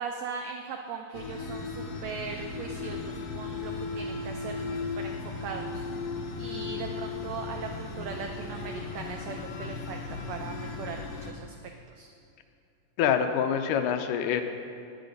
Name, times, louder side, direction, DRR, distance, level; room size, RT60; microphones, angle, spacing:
voice 1, 0.0-5.1 5.4-5.8 6.4-10.0 10.3-11.5 11.9-12.1, right 6 dB, 90° right, 3 dB, 1.5 m, -39 dB
sound 1, 1.1-11.3, left 4 dB, 70° left, 1.7 m, -36 dB
voice 2, 13.0-14.4, left 8 dB, 85° left, 7 dB, 2.2 m, -25 dB
9.9 x 9.1 x 5.3 m, 2.5 s
omnidirectional pair, 3.8 m